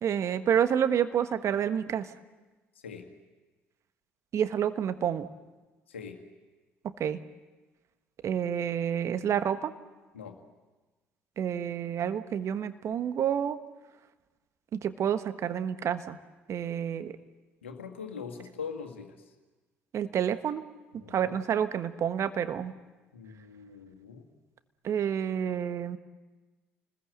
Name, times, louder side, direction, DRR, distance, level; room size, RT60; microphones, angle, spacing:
voice 1, 0.0-2.1 4.3-5.3 7.0-7.2 8.2-9.7 11.4-13.6 14.7-16.2 16.5-17.1 19.9-20.6 20.9-22.7 24.8-26.0, right 9 dB, 50° right, 11 dB, 1.4 m, -29 dB
voice 2, 17.6-19.1 21.0-21.4 23.1-24.2, left 6 dB, 85° left, 4 dB, 1.9 m, -42 dB
29.0 x 20.5 x 8.0 m, 1.2 s
figure-of-eight pair, 50°, 6 cm